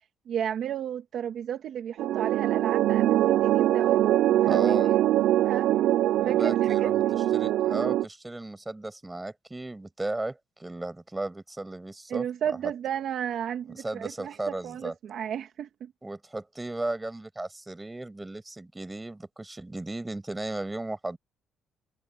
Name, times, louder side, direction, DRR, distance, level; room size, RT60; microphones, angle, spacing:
voice 1, 0.3-5.7 6.3-7.2 12.1-15.9, right 9 dB, 60° right, 1.8 m, -33 dB
sound 1, 2.0-8.0, right 13 dB, 80° right, 0.4 m, -23 dB
voice 2, 4.5-5.0 6.2-12.2 13.7-14.9 16.0-21.2, right 2 dB, 10° right, 6.1 m, -35 dB
cardioid pair, 130°, 0 cm